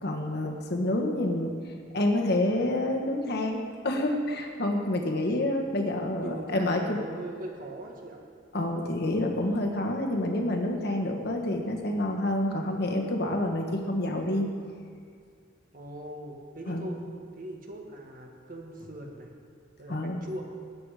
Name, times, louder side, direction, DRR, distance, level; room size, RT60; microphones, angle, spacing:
voice 1, 0.0-1.6 1.9-7.0 8.5-14.5 16.7-16.9 19.9-20.2, left 1 dB, 60° left, 2 dB, 1.6 m, -28 dB
voice 2, 6.2-8.2 15.7-17.0 17.3-19.3 19.8-20.5, right 1 dB, 45° right, 0 dB, 1.6 m, -40 dB
19.0 x 8.3 x 5.0 m, 2.2 s
head